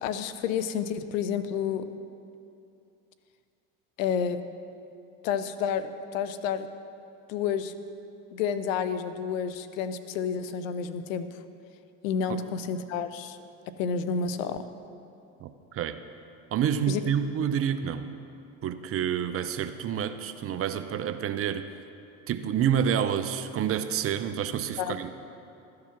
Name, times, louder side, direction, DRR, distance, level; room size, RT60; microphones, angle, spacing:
voice 1, 0.0-1.8 4.0-4.4 5.2-6.7 7.3-7.7 8.3-11.3 12.0-13.4 13.8-14.6 16.9-17.0 24.8-24.9, left 7 dB, 85° left, 11 dB, 0.7 m, -30 dB
voice 2, 15.4-16.0 16.5-18.1 18.6-21.7 22.3-25.1, right 8 dB, 35° right, 10 dB, 0.6 m, -28 dB
13.5 x 4.8 x 5.9 m, 2.6 s
supercardioid pair, 90°, 38 cm